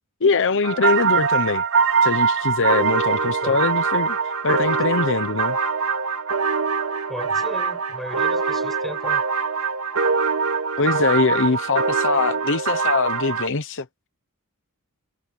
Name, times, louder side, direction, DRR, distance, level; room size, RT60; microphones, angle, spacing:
voice 1, 0.2-1.6 2.0-5.6 10.8-13.8, left 4 dB, 60° left, 0.9 m, -22 dB
sound 1, 0.6-13.5, right 5 dB, 65° right, 2.6 m, -23 dB
voice 2, 7.1-9.2, equal, ahead, 7.6 m, -36 dB
head